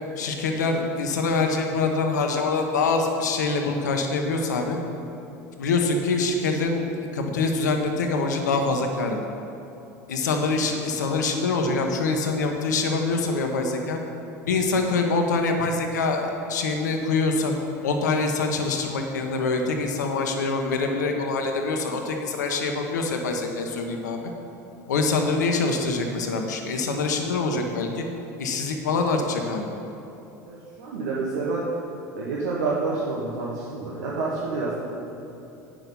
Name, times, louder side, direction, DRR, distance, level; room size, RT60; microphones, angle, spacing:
voice 1, 0.2-4.8 5.6-6.9 7.1-9.2 10.1-14.0 14.5-17.5 17.8-24.2 24.9-28.0 28.4-29.7, left 3 dB, 85° left, 3 dB, 1.0 m, -25 dB
voice 2, 30.5-31.6 32.1-34.8, right 3 dB, 80° right, -5 dB, 1.2 m, -28 dB
8.9 x 6.2 x 5.4 m, 2.9 s
hypercardioid pair, 85°, 9 cm